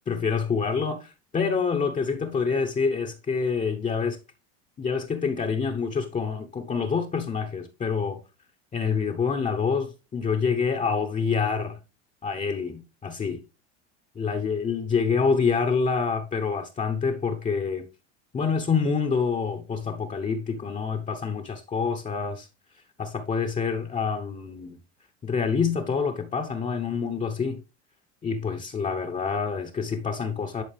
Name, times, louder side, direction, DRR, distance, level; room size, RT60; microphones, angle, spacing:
voice 1, 0.1-4.2 4.8-8.2 8.7-11.8 12.2-13.4 14.2-17.9 18.3-22.5 23.0-24.8 25.2-27.6 28.2-30.6, left 5 dB, 20° left, 0.9 m, -27 dB
10.5 x 4.0 x 3.4 m
hypercardioid pair, 95°, 33 cm